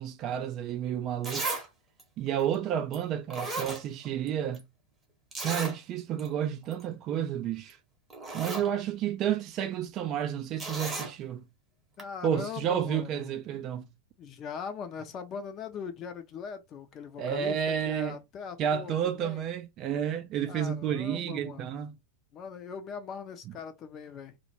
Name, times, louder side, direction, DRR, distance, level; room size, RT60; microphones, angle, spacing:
voice 1, 0.0-1.5 2.2-4.6 5.4-7.8 8.3-11.5 12.2-13.9 17.2-18.2 18.6-22.0, right 9 dB, 35° right, 0.4 m, -31 dB
Zipper (clothing), 0.7-0.8 1.2-1.7 2.0-2.1 2.9-3.0 3.3-4.3 4.5-4.6 5.3-5.8 6.2-6.3 6.6-6.8 7.7-7.8 8.1-8.7 10.6-11.1 12.0-12.1, right 2 dB, 15° right, 0.8 m, -35 dB
voice 2, 12.0-13.3 14.2-19.5 20.4-21.8 22.3-24.4, left 6 dB, 30° left, 0.5 m, -40 dB
2.1 x 2.1 x 2.9 m
figure-of-eight pair, 90°, 0 cm